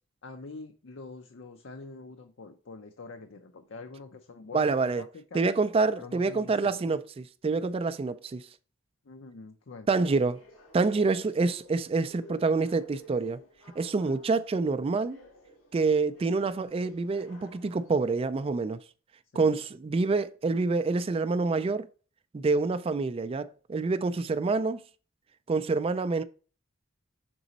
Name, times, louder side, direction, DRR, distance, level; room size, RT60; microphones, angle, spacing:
voice 1, 0.2-5.4 6.0-6.9 9.0-10.0 19.3-19.6, left 3 dB, 65° left, 0.6 m, -45 dB
voice 2, 4.5-5.0 5.3-8.4 9.9-10.4 10.7-13.4 13.8-15.2 15.7-18.8 19.4-21.9 22.3-24.8 25.5-26.2, right 4 dB, 30° right, 0.3 m, -27 dB
sound 1, 10.1-18.5, equal, 90° left, 2.5 m, -55 dB
6.1 x 4.0 x 4.0 m
head